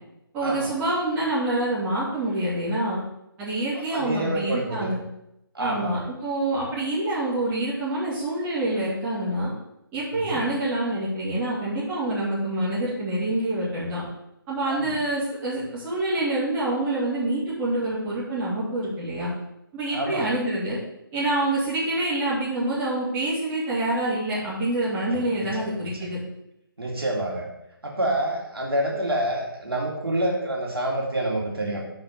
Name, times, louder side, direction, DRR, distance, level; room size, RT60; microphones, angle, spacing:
voice 1, 0.3-3.0 3.4-5.0 5.6-9.5 9.9-14.0 14.5-19.3 19.7-20.8 21.1-26.2, right 1 dB, 15° right, -9 dB, 2.4 m, -26 dB
voice 2, 3.7-4.9 5.5-6.0 10.1-10.4 14.7-15.0 19.9-20.3 25.1-26.1 26.8-27.5 27.8-31.8, right 1 dB, 80° right, -1 dB, 2.1 m, -28 dB
5.9 x 4.5 x 6.4 m, 0.83 s
figure-of-eight pair, 155°, 12 cm